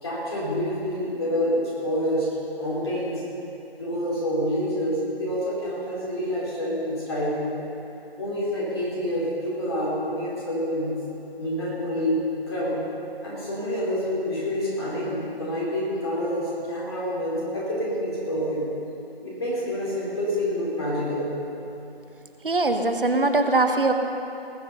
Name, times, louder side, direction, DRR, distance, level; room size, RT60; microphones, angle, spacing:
voice 1, 0.0-2.3 2.6-3.2 3.7-7.5 8.2-11.0 11.4-12.8 13.2-18.7 19.2-21.3, equal, 25° left, -7 dB, 3.9 m, -27 dB
voice 2, 22.4-23.9, right 2 dB, 60° right, 6 dB, 1.2 m, -21 dB
19.5 x 8.1 x 5.5 m, 2.9 s
figure-of-eight pair, 160°, 31 cm